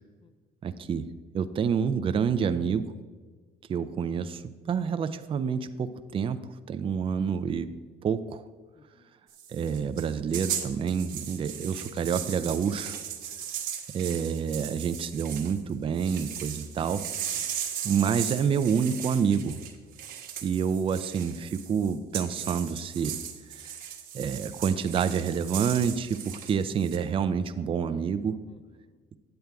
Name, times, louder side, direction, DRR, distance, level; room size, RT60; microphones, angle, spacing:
voice 1, 0.6-1.1 1.3-2.8 3.7-4.4 4.7-7.7 8.0-8.5 9.5-13.0 13.9-17.0 17.8-19.6 20.4-23.2 24.1-28.4, right 7 dB, 30° right, 10 dB, 0.4 m, -28 dB
voice 2, 8.7-9.1 13.2-13.5 17.3-17.6 19.8-20.2 28.5-29.0, left 5 dB, 30° left, 12 dB, 0.6 m, -60 dB
sound 1, 9.3-15.6 15.9-27.0, right 9 dB, 60° right, 1.1 m, -37 dB
8.9 x 7.8 x 3.5 m, 1.4 s
cardioid pair, 110°, 17 cm